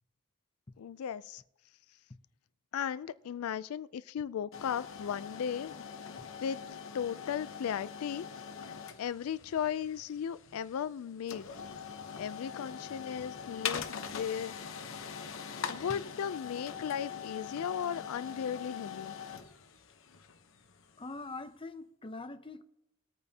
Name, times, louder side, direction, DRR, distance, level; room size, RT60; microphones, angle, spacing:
voice 1, 0.8-1.4 2.7-5.9 6.4-6.6 6.9-8.3 8.7-11.5 12.2-14.5 15.7-19.2, left 8 dB, 80° left, 0.4 m, -36 dB
sound 1, 4.5-21.4, left 7 dB, 65° left, 0.9 m, -43 dB
voice 2, 21.0-22.6, left 3 dB, 25° left, 0.6 m, -43 dB
21.0 x 8.7 x 2.8 m
head